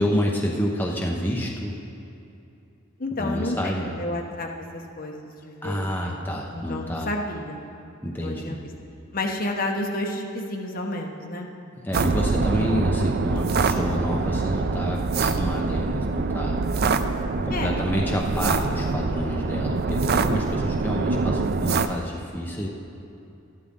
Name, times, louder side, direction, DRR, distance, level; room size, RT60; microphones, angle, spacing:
voice 1, 0.0-1.8 3.2-3.9 5.6-7.1 8.0-8.7 11.8-17.1 17.4-22.7, equal, 10° left, -2 dB, 0.8 m, -28 dB
voice 2, 3.0-6.2 6.5-7.6 8.2-8.6 9.1-11.5 17.5-17.8, left 1 dB, 45° left, 1 dB, 1.1 m, -31 dB
sound 1, 11.9-21.9, right 3 dB, 50° right, 0.4 m, -24 dB
13.0 x 12.0 x 3.7 m, 2.7 s
head